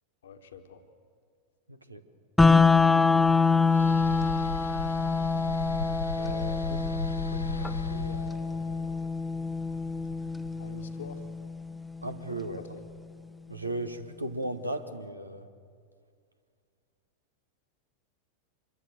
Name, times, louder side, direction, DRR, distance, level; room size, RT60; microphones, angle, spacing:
voice 1, 0.2-0.8 6.1-6.8 7.1-8.9 10.6-11.2 12.5-12.8, left 5 dB, 60° left, 7 dB, 1.5 m, -45 dB
voice 2, 1.7-2.0 12.0-12.6 13.5-15.5, right 1 dB, 85° right, 9 dB, 1.5 m, -35 dB
sound 1, 2.4-12.4, left 4 dB, 5° left, 0.9 m, -26 dB
sound 2, 3.7-10.9, left 3 dB, 85° left, 1.9 m, -37 dB
26.5 x 22.5 x 7.6 m, 2.2 s
figure-of-eight pair, 90°, 0 cm